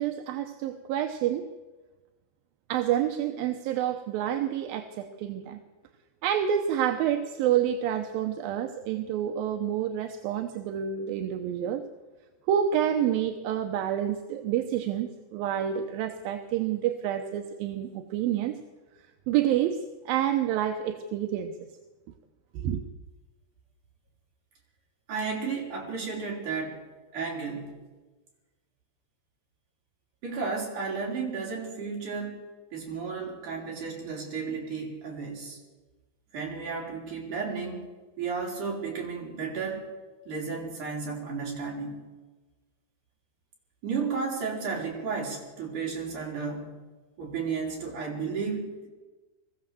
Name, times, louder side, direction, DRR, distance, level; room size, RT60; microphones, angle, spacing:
voice 1, 0.0-1.5 2.7-5.6 6.2-11.8 12.5-18.6 19.3-21.6 22.5-22.8, right 10 dB, 70° right, 6 dB, 2.5 m, -28 dB
voice 2, 25.1-26.8 27.1-27.8 30.2-32.4 32.7-35.6 36.3-37.9 38.2-39.9 40.3-42.0 43.8-46.7 47.2-48.9, right 5 dB, 50° right, -1 dB, 5.8 m, -33 dB
22.5 x 15.0 x 7.8 m, 1.2 s
omnidirectional pair, 4.7 m